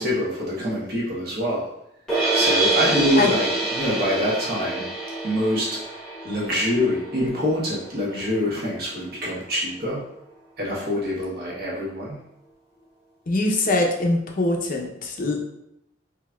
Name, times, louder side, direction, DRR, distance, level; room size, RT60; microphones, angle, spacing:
voice 1, 0.0-1.7 2.3-4.9 5.2-5.9 6.2-10.0 10.6-12.2, equal, 50° right, -5 dB, 1.1 m, -25 dB
sound 1, 2.1-8.2, right 2 dB, 5° left, 1.0 m, -26 dB
voice 2, 13.3-15.4, left 2 dB, 45° left, 1 dB, 0.6 m, -22 dB
4.9 x 2.8 x 2.2 m, 0.79 s
head